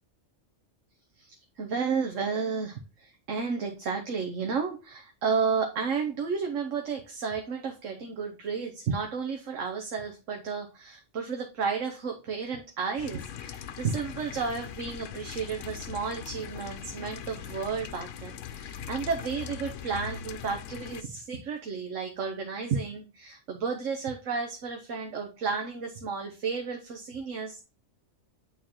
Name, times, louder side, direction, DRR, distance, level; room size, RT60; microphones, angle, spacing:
voice 1, 1.2-27.6, right 5 dB, 85° right, 3 dB, 1.3 m, -32 dB
sound 1, 13.0-21.0, left 8 dB, 80° left, 0.9 m, -41 dB
8.6 x 3.9 x 2.9 m, 0.31 s
omnidirectional pair, 1.3 m